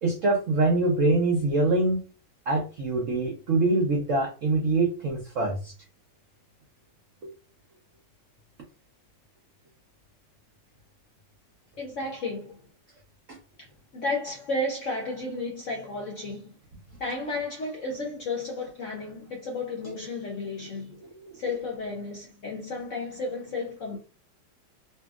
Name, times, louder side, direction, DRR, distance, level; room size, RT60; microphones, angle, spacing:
voice 1, 0.0-2.0 2.5-5.7 7.2-7.3 13.3-13.4, right 2 dB, 70° right, 0.7 m, -24 dB
voice 2, 11.8-12.6 13.6-13.7 13.9-16.6 17.0-21.0 21.3-24.0, left 2 dB, 65° left, 0.7 m, -33 dB
2.8 x 2.7 x 2.4 m
omnidirectional pair, 2.0 m